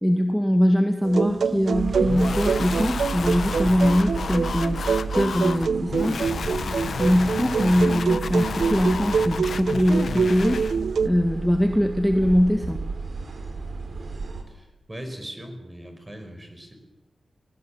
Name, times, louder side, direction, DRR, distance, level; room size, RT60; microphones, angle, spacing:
voice 1, 0.0-4.8 5.1-6.2 7.0-10.6 11.0-12.8, equal, ahead, 4 dB, 1.8 m, -22 dB
sound 1, 1.0-11.1, right 5 dB, 85° right, 0.7 m, -26 dB
sound 2, 1.7-14.4, right 3 dB, 65° right, 3.9 m, -33 dB
sound 3, 2.1-10.8, left 5 dB, 80° left, 0.8 m, -32 dB
voice 2, 14.5-16.7, right 1 dB, 20° right, 6 dB, 5.4 m, -39 dB
21.0 x 19.0 x 8.7 m, 1.1 s
wide cardioid pair, 90°, 0 cm